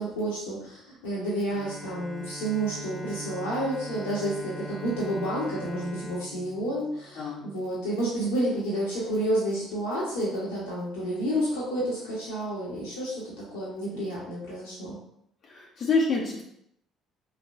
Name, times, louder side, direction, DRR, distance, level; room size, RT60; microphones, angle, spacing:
voice 1, 0.0-13.1 13.5-15.0, right 1 dB, 75° left, -7 dB, 1.0 m, -30 dB
Bowed string instrument, 1.5-7.5, right 1 dB, 5° right, 0.4 m, -41 dB
voice 2, 7.2-7.5 15.4-16.4, left 3 dB, 50° left, -2 dB, 0.7 m, -27 dB
4.2 x 3.3 x 2.6 m, 0.74 s
figure-of-eight pair, 50°, 0 cm